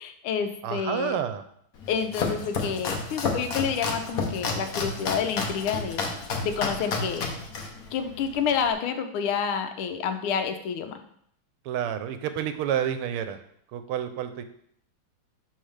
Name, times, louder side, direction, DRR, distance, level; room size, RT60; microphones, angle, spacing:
voice 1, 0.0-1.2 1.9-6.0 6.4-7.3 7.9-11.0, left 7 dB, 85° left, 7 dB, 1.6 m, -29 dB
voice 2, 0.6-1.4 11.6-13.4 13.7-14.4, right 9 dB, 85° right, 10 dB, 1.5 m, -29 dB
Domestic sounds home sounds, 1.8-8.7, left 3 dB, 55° left, 1.1 m, -31 dB
11.0 x 3.8 x 3.3 m, 0.67 s
omnidirectional pair, 2.4 m